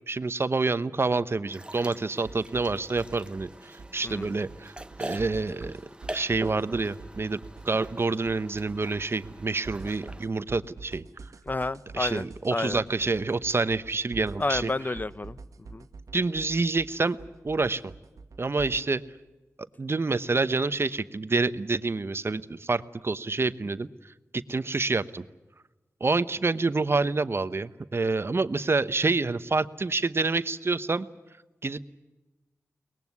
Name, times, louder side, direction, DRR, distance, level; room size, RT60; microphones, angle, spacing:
voice 1, 0.1-4.7 5.0-5.8 6.1-7.4 7.6-11.0 11.9-14.7 16.1-17.2 17.4-17.9 18.4-19.0 19.8-25.2 26.0-31.1 31.6-31.8, right 3 dB, 45° right, 13 dB, 1.0 m, -27 dB
sound 1, 1.5-10.2, right 1 dB, 20° right, 1.1 m, -43 dB
sound 2, 2.2-18.8, right 4 dB, 85° right, 1.6 m, -46 dB
voice 2, 11.5-12.8 14.4-15.4 15.7-15.9, left 2 dB, 30° left, 16 dB, 0.8 m, -30 dB
23.0 x 20.0 x 9.6 m, 1.1 s
cardioid pair, 60°, 6 cm